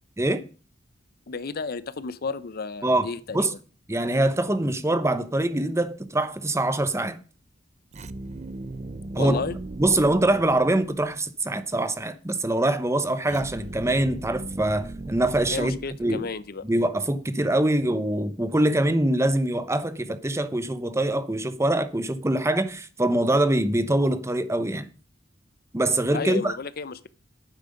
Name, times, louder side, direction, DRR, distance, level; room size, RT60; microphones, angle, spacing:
voice 1, 1.3-3.6 9.2-9.6 15.5-16.7 26.1-27.1, left 4 dB, 55° left, 0.6 m, -32 dB
voice 2, 3.9-7.2 9.1-9.4 9.8-16.3 16.6-24.9 25.7-26.5, right 1 dB, 15° right, 0.8 m, -24 dB
sound 1, 7.9-11.2 13.3-16.5, right 2 dB, 35° right, 0.5 m, -38 dB
11.5 x 9.3 x 5.2 m
head